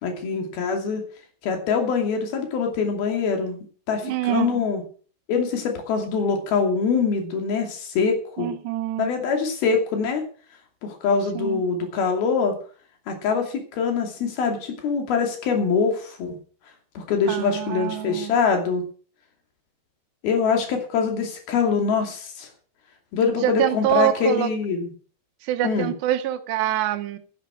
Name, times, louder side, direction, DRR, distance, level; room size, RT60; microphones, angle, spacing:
voice 1, 0.0-1.0 1.4-3.6 3.9-4.8 5.3-8.5 9.0-10.2 10.8-12.6 13.1-16.4 17.0-18.8 20.2-22.5 23.1-24.9 25.6-25.9, left 5 dB, 65° left, 4 dB, 4.4 m, -24 dB
voice 2, 4.0-4.6 8.4-9.1 11.4-11.6 17.3-18.3 23.4-24.5 25.4-27.2, right 13 dB, 90° right, 9 dB, 3.1 m, -25 dB
12.5 x 10.0 x 6.3 m, 0.42 s
omnidirectional pair, 4.9 m